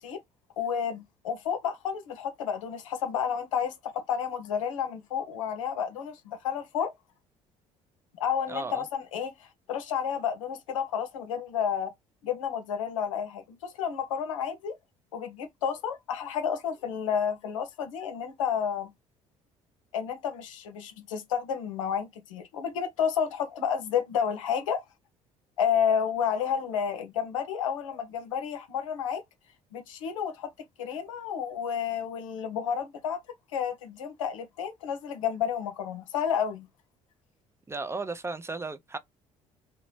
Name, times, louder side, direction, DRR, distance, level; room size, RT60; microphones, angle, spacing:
voice 1, 0.6-6.9 8.2-11.9 12.2-14.8 15.1-18.9 19.9-24.8 25.6-29.2 29.7-30.5 30.8-33.2 33.5-36.7, left 8 dB, 85° left, 0.6 m, -31 dB
voice 2, 8.5-8.8 37.7-39.0, right 3 dB, 15° right, 0.4 m, -35 dB
2.8 x 2.1 x 3.0 m
hypercardioid pair, 55°, 17 cm